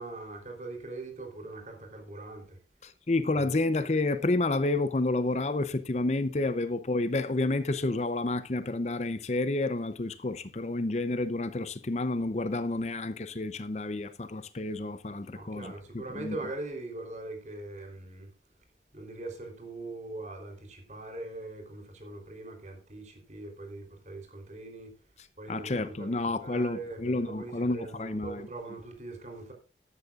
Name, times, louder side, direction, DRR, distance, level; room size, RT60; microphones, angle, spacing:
voice 1, 0.0-2.6 15.3-18.3 18.9-24.9 25.4-29.5, right 2 dB, 40° right, 3.7 m, -41 dB
voice 2, 2.8-16.4 25.5-28.5, left 2 dB, 40° left, 0.6 m, -30 dB
13.5 x 12.5 x 2.5 m
head